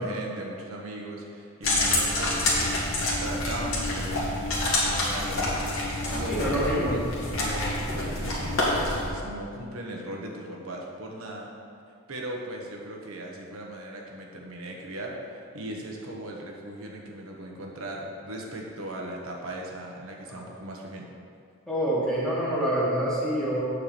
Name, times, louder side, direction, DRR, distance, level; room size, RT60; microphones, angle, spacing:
voice 1, 0.0-5.6 6.1-11.5 12.1-21.1, right 1 dB, 75° right, -1 dB, 1.3 m, -38 dB
sound 1, 1.6-9.1, left 1 dB, 70° left, 2.0 m, -27 dB
voice 2, 6.3-7.0 20.3-20.4 21.7-23.6, right 1 dB, 5° left, -9 dB, 2.1 m, -26 dB
8.4 x 4.7 x 6.9 m, 2.4 s
head